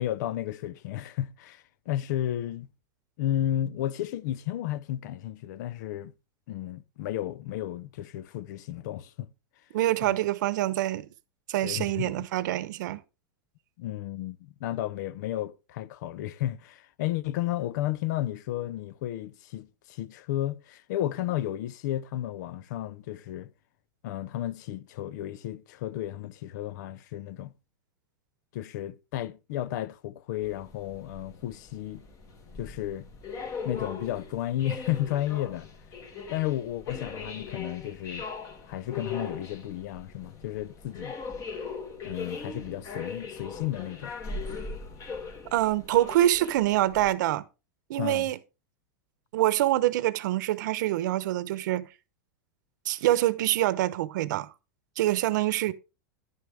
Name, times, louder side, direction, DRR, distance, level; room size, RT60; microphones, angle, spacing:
voice 1, 0.0-2.7 3.2-6.1 6.5-9.3 10.0-10.1 11.6-12.3 13.8-23.5 24.0-27.5 28.5-32.0 32.6-33.1 33.6-35.7 36.3-38.3 38.7-41.2 42.0-44.1 48.0-48.3, left 13 dB, 65° left, 0.8 m, -33 dB
voice 2, 9.7-11.1 11.5-13.0 45.5-47.4 47.9-48.4 49.3-51.9 52.8-54.5 55.0-55.7, right 14 dB, 70° right, 0.9 m, -25 dB
sound 1, 30.4-47.1, left 4 dB, 35° left, 2.2 m, -40 dB
11.0 x 9.6 x 3.4 m
supercardioid pair, 135°, 10 cm